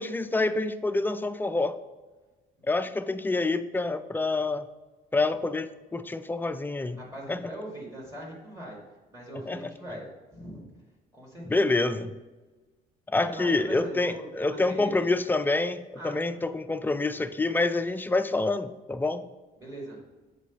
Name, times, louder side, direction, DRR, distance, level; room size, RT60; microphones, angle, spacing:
voice 1, 0.0-1.8 2.7-4.7 5.1-7.0 7.3-7.4 9.5-9.6 11.5-12.1 13.1-19.2, left 3 dB, 10° left, 11 dB, 0.4 m, -27 dB
voice 2, 7.0-8.8 9.1-10.1 10.3-10.7 11.1-11.6 13.2-15.1 16.0-16.2 19.6-20.0, right 1 dB, 15° right, -4 dB, 2.2 m, -41 dB
7.3 x 4.0 x 5.2 m, 1.3 s
cardioid pair, 110°, 17 cm